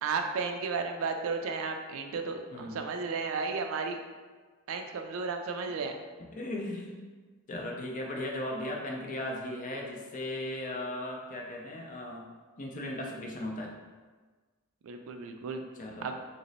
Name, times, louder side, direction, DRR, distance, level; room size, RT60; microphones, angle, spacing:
voice 1, 0.0-4.0 4.7-6.0 14.8-15.6 16.0-16.1, right 4 dB, 65° right, 5 dB, 0.3 m, -33 dB
voice 2, 6.3-7.1 7.5-12.2 12.6-13.7 15.8-16.1, left 1 dB, 35° left, 0 dB, 0.4 m, -37 dB
2.9 x 2.0 x 4.0 m, 1.4 s
head